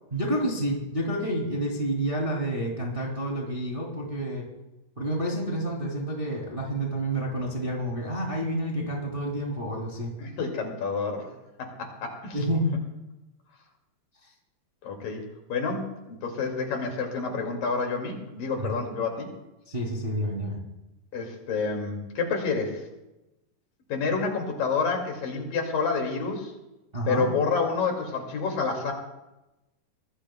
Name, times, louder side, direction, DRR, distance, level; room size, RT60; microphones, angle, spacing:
voice 1, 0.1-4.5 5.0-10.1 12.3-12.7 18.6-18.7 19.7-20.6 26.9-27.3, right 1 dB, 15° right, -2 dB, 2.3 m, -29 dB
voice 2, 10.2-11.3 11.6-12.4 14.8-15.2 15.5-19.3 21.1-22.8 23.9-26.5 27.1-28.9, left 4 dB, 65° left, 2 dB, 3.9 m, -29 dB
24.5 x 19.0 x 2.3 m, 0.97 s
omnidirectional pair, 4.3 m